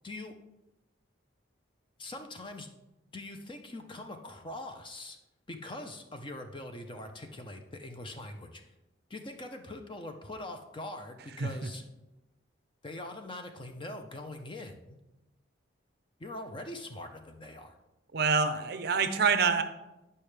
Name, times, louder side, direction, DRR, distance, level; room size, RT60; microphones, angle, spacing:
voice 1, 0.0-0.3 2.0-2.7 3.1-5.2 5.5-8.6 9.1-11.8 12.8-15.0 16.2-17.8, left 1 dB, 25° left, 6 dB, 0.6 m, -42 dB
voice 2, 11.4-11.7 18.1-19.6, right 5 dB, 50° right, 9 dB, 0.5 m, -26 dB
8.8 x 5.5 x 3.3 m, 0.95 s
head